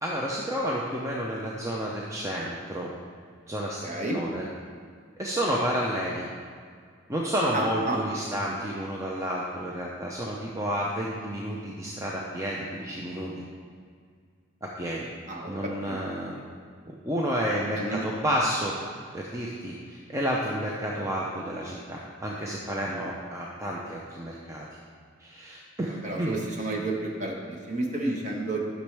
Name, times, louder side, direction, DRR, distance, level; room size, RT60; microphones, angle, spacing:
voice 1, 0.0-2.9 3.5-3.8 4.1-4.5 5.2-6.3 7.1-13.3 14.6-15.1 15.5-16.4 16.9-18.7 19.1-24.6 25.2-26.4, equal, 15° right, -3 dB, 0.5 m, -30 dB
voice 2, 3.8-4.2 7.5-8.2 15.3-16.0 17.8-18.0 26.0-28.7, right 2 dB, 35° right, -1 dB, 1.1 m, -31 dB
10.5 x 6.2 x 3.4 m, 2.1 s
head